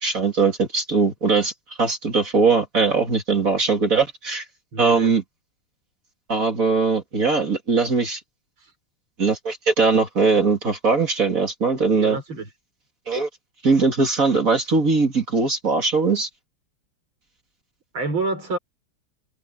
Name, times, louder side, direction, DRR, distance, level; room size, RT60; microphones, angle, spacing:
voice 1, 0.0-1.5 1.8-4.4 4.8-5.2 6.3-8.2 9.2-12.2 13.1-13.3 13.6-16.3, right 4 dB, 40° right, 2.7 m, -20 dB
voice 2, 4.7-5.2 8.6-8.7 11.9-12.5 17.9-18.6, right 3 dB, 70° right, 5.9 m, -28 dB
omnidirectional pair, 2.3 m